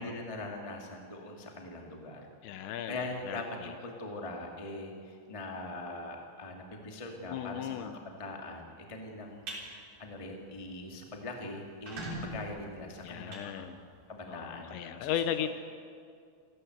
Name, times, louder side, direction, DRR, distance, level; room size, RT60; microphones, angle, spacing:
voice 1, 0.0-2.3 2.9-9.4 10.0-13.7 14.1-15.5, left 2 dB, 15° left, 1 dB, 1.0 m, -42 dB
voice 2, 2.4-3.0 3.2-3.7 7.3-7.9 13.0-13.8 14.3-15.5, left 10 dB, 75° left, 9 dB, 2.9 m, -36 dB
sound 1, 9.2-9.6 10.1-10.3 10.7-10.8 11.0-11.1 11.6-14.2, right 1 dB, 45° right, 4.8 m, -42 dB
28.5 x 15.0 x 8.1 m, 2.3 s
omnidirectional pair, 5.6 m